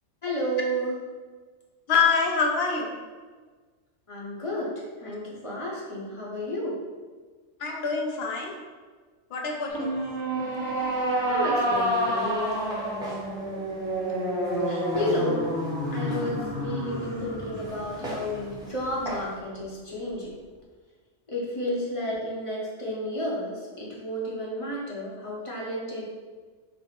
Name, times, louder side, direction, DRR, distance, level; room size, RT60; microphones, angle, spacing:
voice 1, 0.2-1.0 4.1-6.7 11.3-12.6 14.7-15.5 15.9-20.3 21.3-26.0, equal, 30° left, -5 dB, 0.8 m, -32 dB
voice 2, 1.9-3.0 7.6-8.5 9.3-9.9, left 5 dB, 65° left, 0 dB, 0.9 m, -25 dB
sound 1, 9.7-19.1, right 1 dB, 75° right, 1.2 m, -29 dB
Walk footsteps, 11.5-19.4, right 1 dB, 5° right, 0.8 m, -42 dB
4.3 x 2.1 x 4.3 m, 1.4 s
omnidirectional pair, 1.2 m